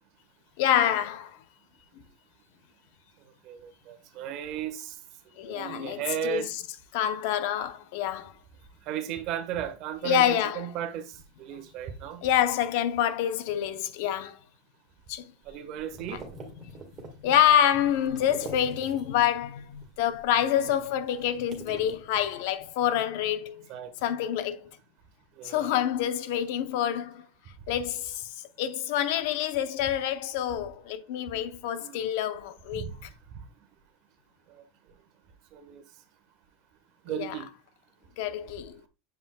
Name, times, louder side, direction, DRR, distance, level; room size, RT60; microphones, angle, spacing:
voice 1, 0.6-1.3 5.4-6.5 6.9-8.4 10.0-10.6 12.2-14.4 15.1-15.3 16.6-16.7 17.2-23.7 24.0-24.7 25.4-27.2 27.7-28.3 28.6-32.9 37.1-37.4 38.2-38.8, left 10 dB, 65° left, 0.7 m, -27 dB
voice 2, 3.4-5.0 5.4-6.5 8.9-12.2 15.5-16.2 23.7-23.9 25.4-25.7 26.3-26.4 31.8-32.1 32.7-32.9 33.3-33.4 35.5-35.8 37.0-37.5, right 9 dB, 45° right, 1.3 m, -35 dB
sound 1, 15.4-19.3 19.6-22.8, right 4 dB, 25° right, 1.7 m, -46 dB
7.8 x 5.3 x 2.3 m
supercardioid pair, 150°, 0 cm